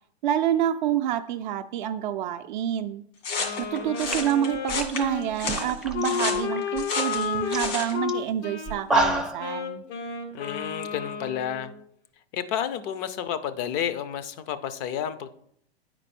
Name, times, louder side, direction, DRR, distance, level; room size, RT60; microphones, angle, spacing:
voice 1, 0.2-3.0 3.6-9.8, right 10 dB, 45° right, 7 dB, 0.4 m, -28 dB
sound 1, 3.2-8.0, left 4 dB, 65° left, 2.3 m, -31 dB
Wind instrument woodwind instrument, 3.3-11.7, left 6 dB, 80° left, 1.9 m, -32 dB
sound 2, 3.6-3.8 4.1-6.0 6.3-6.8 7.2-7.3 7.5-7.7 8.1-8.2 8.7-9.4, right 2 dB, ahead, 0.5 m, -28 dB
voice 2, 10.3-11.7 12.3-15.3, left 9 dB, 40° left, 12 dB, 0.7 m, -31 dB
9.5 x 4.5 x 4.3 m, 0.68 s
hypercardioid pair, 115°, 33 cm